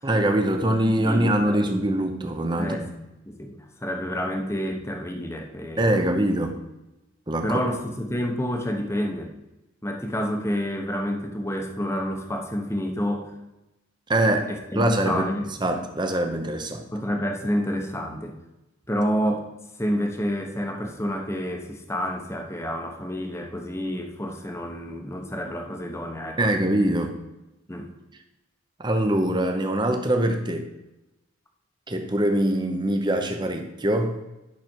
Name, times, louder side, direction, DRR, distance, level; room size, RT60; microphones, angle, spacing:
voice 1, 0.0-2.9 5.8-6.5 7.3-7.6 14.1-15.2 15.6-16.8 26.4-27.1 28.8-30.7 31.9-34.2, right 1 dB, 20° right, 5 dB, 0.9 m, -23 dB
voice 2, 0.8-1.8 2.6-2.9 3.2-6.1 7.4-9.3 9.8-13.3 14.5-15.5 16.9-18.4 18.9-19.5 19.8-26.5 27.7-27.9, equal, 15° left, 3 dB, 0.9 m, -29 dB
11.0 x 6.0 x 4.5 m, 0.97 s
head